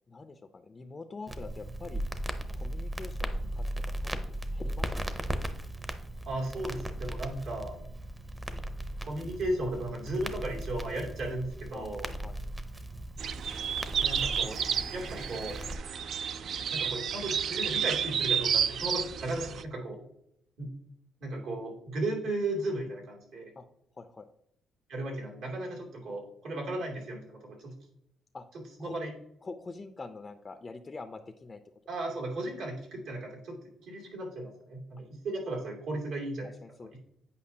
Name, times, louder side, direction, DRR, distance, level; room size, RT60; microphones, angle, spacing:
voice 1, 0.1-2.0 2.5-3.7 4.0-5.2 11.7-12.4 23.6-23.7 24.0-24.3 28.3-28.5 28.8-29.0 29.4-31.6 36.4-37.0, left 3 dB, 30° left, 7 dB, 0.5 m, -45 dB
Crackle, 1.3-15.7, right 1 dB, 20° right, 0.7 m, -37 dB
voice 2, 6.3-7.8 9.0-12.1 14.0-14.6 14.9-15.6 16.7-20.0 20.6-20.7 21.2-23.5 24.9-27.7 28.8-29.1 31.9-33.6 33.8-36.5 36.9-37.0, right 1 dB, 80° right, -2 dB, 2.5 m, -35 dB
sound 1, 13.2-19.6, right 7 dB, 65° right, 0.4 m, -31 dB
8.5 x 5.2 x 2.7 m, 0.78 s
cardioid pair, 90°, 0 cm